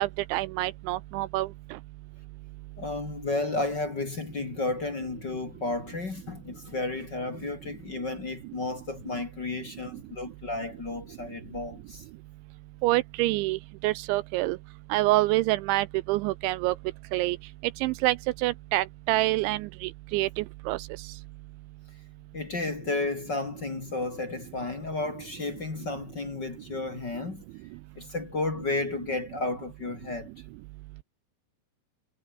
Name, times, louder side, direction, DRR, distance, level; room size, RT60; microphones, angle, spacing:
voice 1, 0.0-1.5 12.8-14.6 14.9-16.8 17.1-17.4 17.8-18.2 18.4-20.8, right 19 dB, 80° right, 2.8 m, -26 dB
voice 2, 2.8-12.0 22.3-27.4 28.0-30.3, left 2 dB, 35° left, 2.0 m, -32 dB
omnidirectional pair, 5.7 m